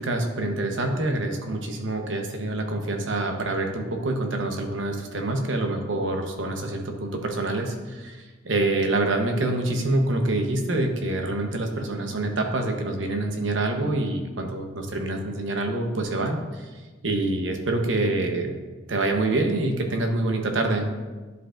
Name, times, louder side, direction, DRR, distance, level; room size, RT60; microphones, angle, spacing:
voice 1, 0.0-16.7 17.0-18.5 18.9-20.9, right 2 dB, 75° right, 4 dB, 0.9 m, -26 dB
11.0 x 5.1 x 2.5 m, 1.3 s
head